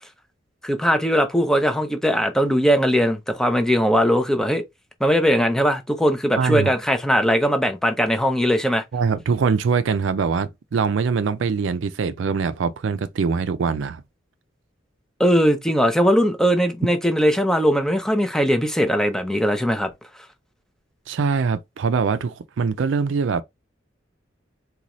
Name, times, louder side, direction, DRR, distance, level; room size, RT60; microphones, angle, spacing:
voice 1, 0.6-4.6 5.0-8.8 15.2-19.9, equal, 5° left, 0.5 m, -20 dB
voice 2, 6.4-6.7 8.9-14.0 21.1-23.4, right 5 dB, 75° right, 0.4 m, -23 dB
3.9 x 2.3 x 3.0 m
head